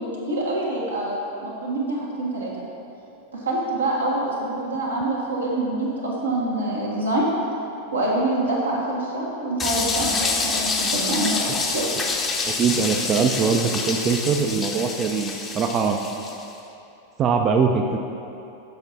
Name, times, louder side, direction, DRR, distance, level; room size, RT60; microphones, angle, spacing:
voice 1, 0.0-2.5 3.4-7.3 7.9-11.9, right 2 dB, 75° right, -4 dB, 1.5 m, -26 dB
sound 1, 9.6-16.4, left 4 dB, 20° left, 0.6 m, -27 dB
voice 2, 12.4-16.0 17.2-18.0, right 5 dB, 30° right, 4 dB, 0.4 m, -22 dB
6.9 x 6.0 x 4.1 m, 2.8 s
figure-of-eight pair, 90°, 0 cm